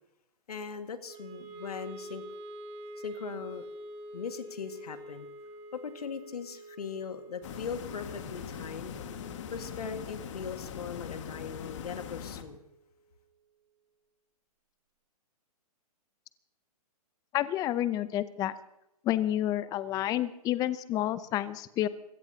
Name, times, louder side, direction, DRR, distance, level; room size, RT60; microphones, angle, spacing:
voice 1, 0.5-2.2 3.0-3.7 4.1-5.3 5.7-8.9 9.5-12.6, left 6 dB, 80° left, 7 dB, 1.8 m, -39 dB
Wind instrument woodwind instrument, 1.1-13.3, right 1 dB, 25° right, 1.7 m, -47 dB
sound 1, 7.4-12.4, left 8 dB, 50° left, 1.7 m, -41 dB
voice 2, 17.3-18.5 19.0-21.9, left 13 dB, 20° left, 15 dB, 0.6 m, -29 dB
26.5 x 16.5 x 2.8 m, 0.87 s
hypercardioid pair, 135°, 19 cm